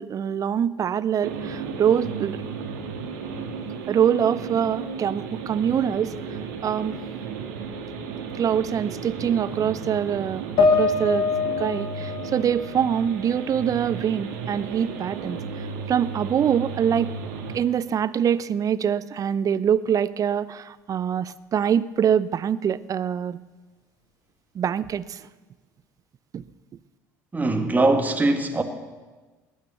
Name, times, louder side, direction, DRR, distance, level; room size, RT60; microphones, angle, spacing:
voice 1, 0.0-2.4 3.9-6.1 6.6-7.0 8.4-11.3 11.6-15.4 15.9-17.1 17.5-23.4 24.5-25.2 26.3-26.4, right 8 dB, 40° right, 0.6 m, -24 dB
sound 1, 1.2-17.6, right 5 dB, 75° right, 2.0 m, -34 dB
sound 2, 10.6-14.0 14.4-15.4, left 4 dB, 60° left, 2.0 m, -26 dB
voice 2, 27.3-28.6, right 2 dB, 20° right, 2.0 m, -21 dB
19.0 x 10.5 x 6.9 m
hypercardioid pair, 65°, 9 cm